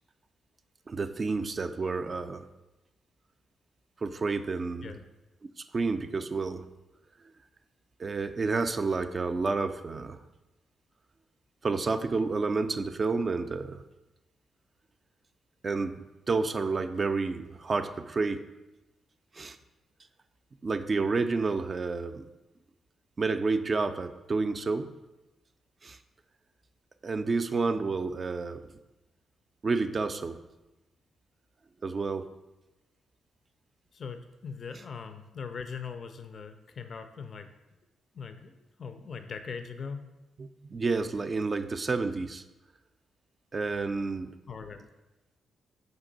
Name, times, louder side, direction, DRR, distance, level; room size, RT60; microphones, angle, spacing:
voice 1, 0.9-2.5 4.0-4.9 5.6-6.6 8.0-10.2 11.6-13.8 15.6-18.5 19.3-19.6 20.6-22.3 23.2-24.9 25.8-26.0 27.0-28.6 29.6-30.4 31.8-32.3 40.4-42.4 43.5-44.3, right 4 dB, 45° right, 9 dB, 0.3 m, -30 dB
voice 2, 33.9-37.5 38.1-40.1 44.5-44.9, left 5 dB, 55° left, 8 dB, 0.3 m, -40 dB
5.2 x 2.6 x 3.8 m, 1.0 s
hypercardioid pair, 45°, 0 cm